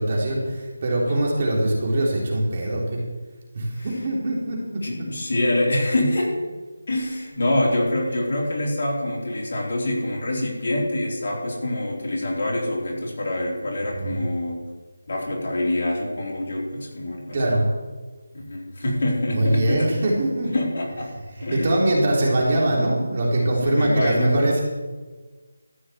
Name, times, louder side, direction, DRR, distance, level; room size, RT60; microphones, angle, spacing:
voice 1, 0.0-3.0 3.5-4.8 14.0-14.2 17.3-17.7 19.3-20.6 21.4-24.6, right 1 dB, 35° right, -3 dB, 3.3 m, -22 dB
voice 2, 4.8-6.3 6.9-14.6 15.1-17.6 18.3-19.9 20.5-21.1 21.4-22.0 23.4-24.5, left 1 dB, 50° left, -3 dB, 4.1 m, -25 dB
14.0 x 6.2 x 7.8 m, 1.3 s
figure-of-eight pair, 170°, 0 cm